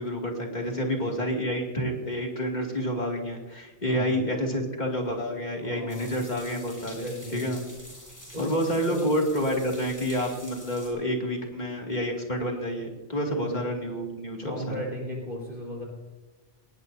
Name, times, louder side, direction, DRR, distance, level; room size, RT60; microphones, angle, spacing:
voice 1, 0.0-7.6 8.4-14.9, equal, 40° left, 0 dB, 2.6 m, -29 dB
voice 2, 0.6-1.1 3.8-4.2 5.6-6.2 6.8-7.4 8.3-8.5 8.8-9.1 13.3-13.5 14.4-15.8, equal, 50° right, -1 dB, 4.6 m, -36 dB
sound 1, 5.9-10.9, equal, 15° left, 5.1 m, -46 dB
19.5 x 18.5 x 2.7 m, 1.2 s
omnidirectional pair, 1.2 m